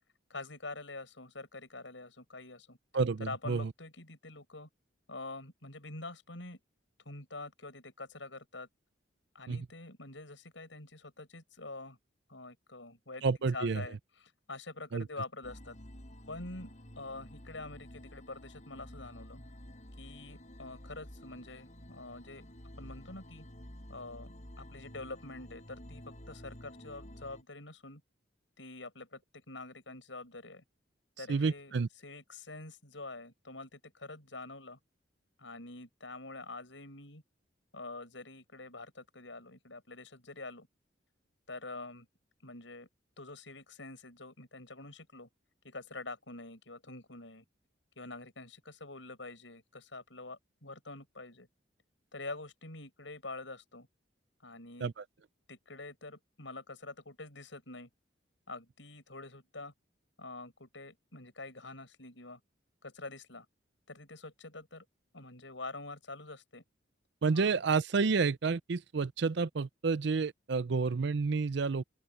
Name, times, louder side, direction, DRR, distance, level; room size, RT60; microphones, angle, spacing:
voice 1, 0.3-2.8 3.2-4.7 5.1-6.6 7.0-8.7 9.3-12.0 12.3-14.0 14.5-15.8 16.3-19.4 20.0-22.4 22.8-23.5 23.9-28.0 28.6-30.6 31.2-31.7 32.0-34.8 35.4-37.2 37.7-40.7 41.5-42.1 42.4-42.9 43.2-45.3 45.6-47.4 48.0-51.5 52.1-53.9 54.4-54.9 55.5-57.9 58.5-59.7 60.2-62.4 62.8-63.5 63.9-64.8 65.1-66.6 67.3-67.5, left 2 dB, 80° left, 7.7 m, -46 dB
voice 2, 2.9-3.7 9.5-9.6 13.2-13.8 14.9-15.1 31.3-31.9 54.8-55.0 67.2-71.8, right 4 dB, 65° right, 0.5 m, -30 dB
sound 1, 15.4-27.4, equal, 40° left, 6.8 m, -51 dB
open air
head